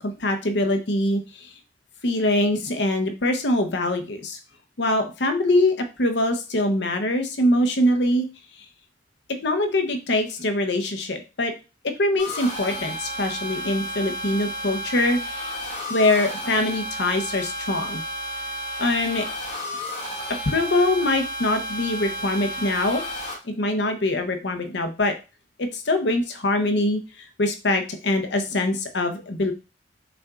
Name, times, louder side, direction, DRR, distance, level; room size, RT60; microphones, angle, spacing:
voice 1, 0.0-1.5 2.0-4.4 4.8-8.3 9.4-11.5 11.8-15.2 15.9-18.0 18.8-19.2 20.5-23.0 23.4-25.1 25.6-27.0 27.4-29.5, left 1 dB, 60° left, 7 dB, 0.8 m, -23 dB
sound 1, 12.2-23.3, equal, 35° left, 2.8 m, -32 dB
5.8 x 2.4 x 3.6 m, 0.30 s
head